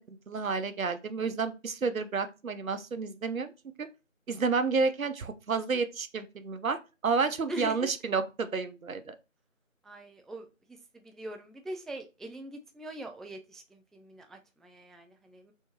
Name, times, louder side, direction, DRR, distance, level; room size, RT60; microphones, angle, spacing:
voice 1, 0.3-3.5 3.8-3.9 4.3-9.2, right 4 dB, 85° right, 10 dB, 0.6 m, -30 dB
voice 2, 7.5-7.9 9.8-15.5, right 1 dB, ahead, 5 dB, 0.3 m, -42 dB
3.4 x 2.7 x 2.9 m, 0.29 s
figure-of-eight pair, 175°, 40 cm